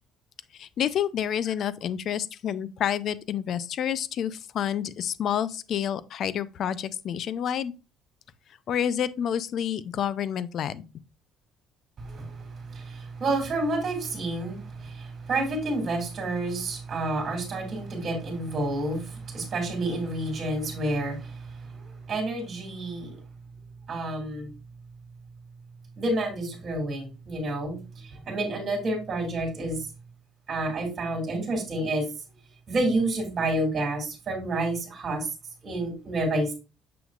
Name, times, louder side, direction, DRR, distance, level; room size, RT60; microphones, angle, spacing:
voice 1, 0.6-7.7 8.7-10.8, left 9 dB, 50° left, 0.5 m, -29 dB
voice 2, 12.0-23.2 23.9-24.5 26.0-29.9 30.5-32.1 32.7-35.3 35.6-36.5, right 2 dB, 35° right, 2.9 m, -29 dB
7.0 x 6.2 x 2.4 m
cardioid pair, 130°, 0 cm